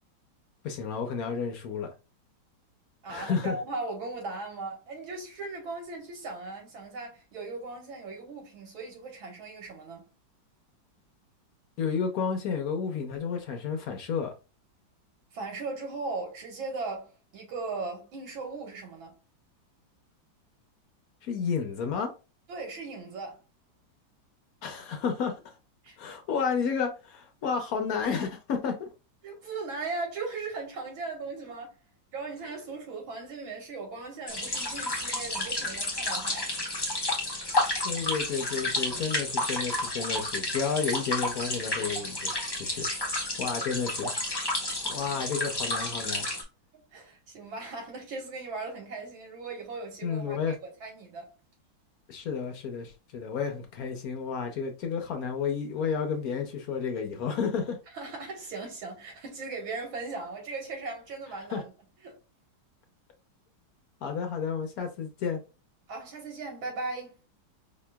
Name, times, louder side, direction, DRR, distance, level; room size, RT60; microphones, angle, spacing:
voice 1, 0.6-1.9 3.1-3.6 11.8-14.3 21.2-22.1 24.6-25.4 26.0-28.9 37.8-44.1 44.9-46.3 50.0-50.6 52.1-57.8 61.5-61.6 64.0-65.4, left 6 dB, 65° left, 0.9 m, -31 dB
voice 2, 3.0-10.0 15.3-19.1 22.5-23.4 25.8-26.0 29.2-31.7 32.1-36.5 46.7-51.3 57.9-61.7 62.0-62.2 65.9-67.2, right 3 dB, 85° right, 2.1 m, -38 dB
sound 1, 34.3-46.4, left 2 dB, 25° left, 0.5 m, -31 dB
5.0 x 3.0 x 2.2 m
omnidirectional pair, 2.1 m